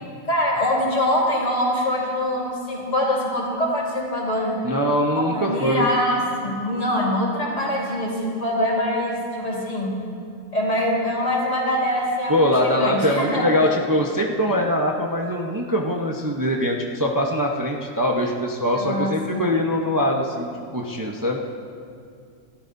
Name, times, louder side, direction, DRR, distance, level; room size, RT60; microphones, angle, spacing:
voice 1, 0.3-4.6 5.1-9.9 10.5-13.5 18.7-19.4, left 1 dB, 60° left, -4 dB, 4.1 m, -24 dB
voice 2, 4.6-5.9 12.3-21.4, equal, 15° right, -1 dB, 0.8 m, -22 dB
29.0 x 13.0 x 2.7 m, 2.4 s
omnidirectional pair, 1.4 m